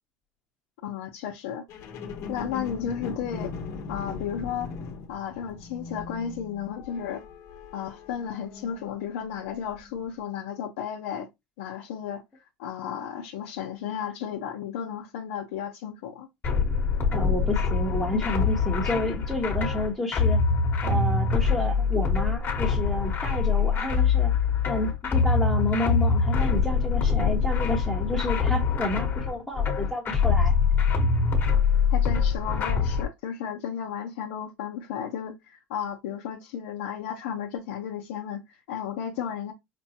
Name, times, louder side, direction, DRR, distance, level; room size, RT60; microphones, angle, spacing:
voice 1, 0.8-1.9 2.3-3.5 3.9-4.7 5.1-7.2 7.7-11.3 11.6-16.3 31.9-39.5, left 8 dB, 85° left, 0.7 m, -34 dB
sound 1, 1.7-9.1 9.7-9.8, left 4 dB, 55° left, 1.0 m, -39 dB
sound 2, 16.4-33.0, left 5 dB, 30° left, 1.2 m, -24 dB
voice 2, 17.1-20.4 20.8-24.3 24.6-30.6, left 2 dB, 5° left, 1.0 m, -30 dB
5.1 x 2.2 x 2.8 m
supercardioid pair, 120°, 6 cm